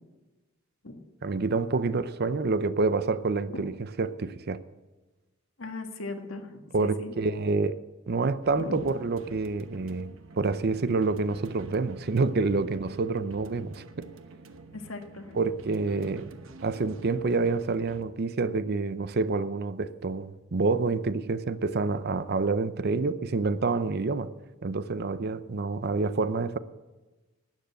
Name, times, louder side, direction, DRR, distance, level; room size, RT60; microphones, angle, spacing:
voice 1, 1.2-3.7 4.0-4.6 6.7-7.8 8.1-10.1 10.4-14.1 15.4-16.3 16.6-24.3 24.6-26.6, right 3 dB, 50° right, 0.6 m, -27 dB
voice 2, 5.6-7.1 8.6-8.8 14.7-15.4 22.9-23.1, left 2 dB, 80° left, 1.7 m, -39 dB
sound 1, 8.4-18.0, right 3 dB, 75° right, 1.0 m, -49 dB
12.0 x 9.4 x 7.7 m
head